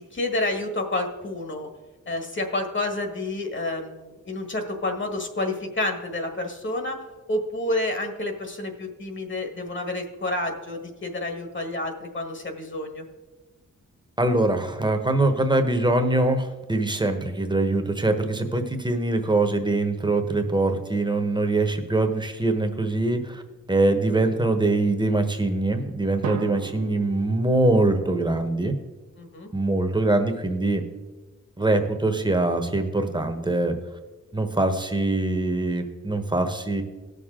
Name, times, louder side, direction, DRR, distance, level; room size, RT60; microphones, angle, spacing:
voice 1, 0.0-1.7 2.1-7.0 7.3-13.0 29.2-29.5, left 2 dB, 40° left, 5 dB, 1.6 m, -29 dB
voice 2, 14.2-23.4 23.7-28.7 29.5-30.8 31.6-33.8 34.3-36.8, right 2 dB, 15° right, 6 dB, 1.1 m, -23 dB
Drum, 26.2-28.3, right 6 dB, 65° right, 0.9 m, -36 dB
17.5 x 6.5 x 3.7 m, 1.2 s
wide cardioid pair, 115°, 31 cm